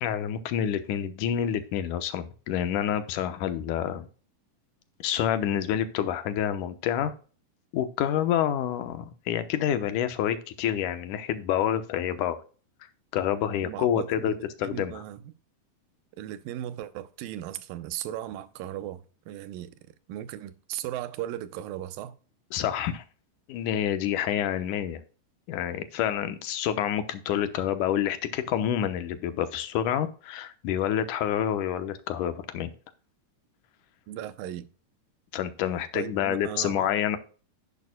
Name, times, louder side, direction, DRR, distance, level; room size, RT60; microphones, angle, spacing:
voice 1, 0.0-4.1 5.0-7.1 7.7-12.4 13.1-14.3 14.6-15.0 22.5-23.0 23.5-25.0 25.5-32.7 35.3-37.2, left 10 dB, 70° left, 2.3 m, -28 dB
voice 2, 13.6-15.3 16.2-19.7 20.1-22.2 34.1-34.6 35.9-36.9, right 12 dB, 90° right, 2.4 m, -37 dB
11.0 x 10.5 x 2.2 m
omnidirectional pair, 3.9 m